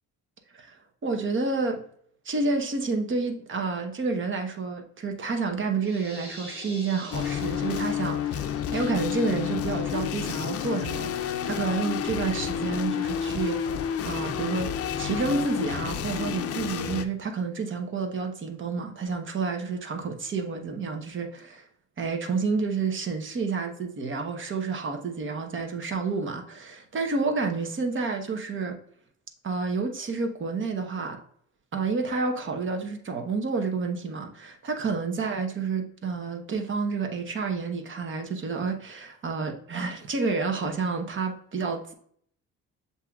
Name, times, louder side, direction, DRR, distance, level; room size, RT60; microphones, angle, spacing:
voice 1, 1.0-1.8 2.2-13.6 14.0-14.7 15.0-21.6 22.0-28.8 29.4-31.2 31.7-41.9, right 4 dB, 40° right, 1.0 m, -29 dB
sound 1, 5.8-8.4, equal, 20° right, 1.7 m, -44 dB
sound 2, 7.1-17.0, left 9 dB, 50° left, 0.5 m, -30 dB
7.3 x 2.8 x 2.3 m
cardioid pair, 90°, 30 cm